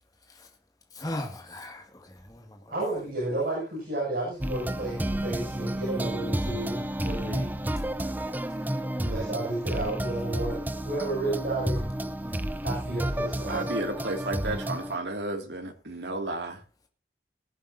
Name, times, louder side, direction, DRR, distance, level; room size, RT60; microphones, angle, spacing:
voice 1, 0.9-2.7 12.2-12.5, left 1 dB, 20° left, 2.2 m, -38 dB
voice 2, 2.7-7.5 9.0-10.6 10.9-11.8 12.6-13.7, right 2 dB, 50° right, 6.8 m, -32 dB
sound 1, 4.4-15.0, right 1 dB, 10° right, 0.6 m, -31 dB
voice 3, 13.5-16.6, right 2 dB, 70° right, 2.4 m, -33 dB
19.5 x 11.0 x 2.8 m
head